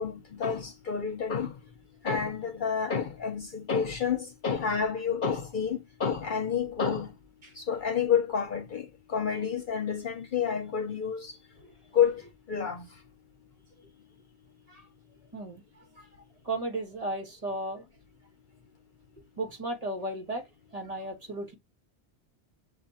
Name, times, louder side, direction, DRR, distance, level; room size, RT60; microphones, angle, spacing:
voice 1, 0.0-1.5 2.0-7.1 7.6-11.3 11.9-12.2 12.5-12.9, left 7 dB, 50° left, 0.8 m, -29 dB
voice 2, 16.4-17.8 19.4-21.5, right 2 dB, 35° right, 1.7 m, -35 dB
7.3 x 2.6 x 2.6 m
omnidirectional pair, 1.1 m